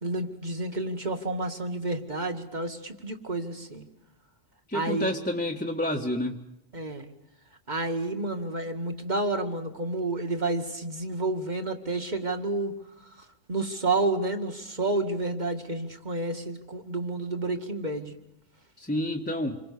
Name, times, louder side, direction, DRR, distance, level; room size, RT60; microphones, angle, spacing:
voice 1, 0.0-3.9 4.7-5.1 6.7-7.1 7.7-12.7 13.5-18.1, right 2 dB, 35° right, 6 dB, 2.2 m, -30 dB
voice 2, 4.7-6.4 18.8-19.6, left 1 dB, 10° left, 0 dB, 1.6 m, -29 dB
28.0 x 23.5 x 6.9 m, 0.88 s
omnidirectional pair, 1.3 m